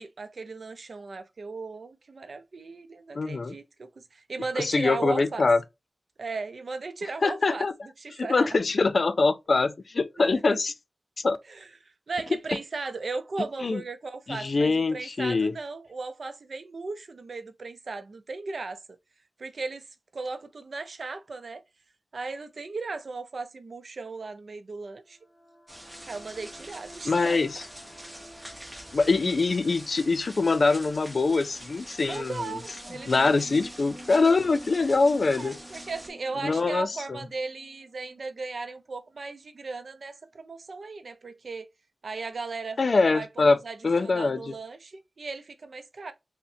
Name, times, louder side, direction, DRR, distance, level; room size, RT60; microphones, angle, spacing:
voice 1, 0.0-5.5 6.2-7.7 8.0-8.5 10.2-10.3 11.5-11.7 12.1-18.8 19.4-19.9 20.1-21.6 22.1-25.2 26.1-27.4 32.1-33.4 35.3-41.7 42.0-42.8 43.1-46.1, right 3 dB, 80° right, 0.5 m, -37 dB
voice 2, 3.1-3.5 4.6-5.6 7.2-7.7 8.1-10.7 11.2-11.4 13.6-13.8 14.3-15.5 27.0-27.6 28.9-32.6 33.1-35.6 36.4-37.2 42.8-44.5, left 3 dB, 70° left, 0.4 m, -24 dB
sound 1, 25.0-38.7, equal, 20° left, 2.2 m, -50 dB
sound 2, 25.7-36.1, equal, 10° right, 1.0 m, -45 dB
5.4 x 2.1 x 2.6 m
wide cardioid pair, 65°, 0 cm